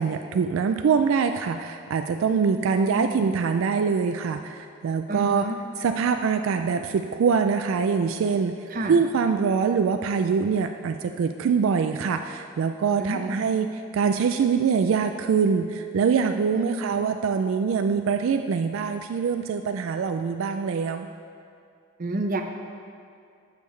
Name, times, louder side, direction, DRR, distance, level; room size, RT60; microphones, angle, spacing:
voice 1, 0.0-5.4 5.8-8.6 8.9-21.1, right 6 dB, 80° right, 7 dB, 0.3 m, -24 dB
voice 2, 2.7-3.1 5.1-5.6 8.7-9.0 13.0-13.4 16.5-17.0 22.0-22.4, right 1 dB, 45° right, 4 dB, 0.7 m, -29 dB
12.0 x 6.7 x 3.2 m, 2.4 s
head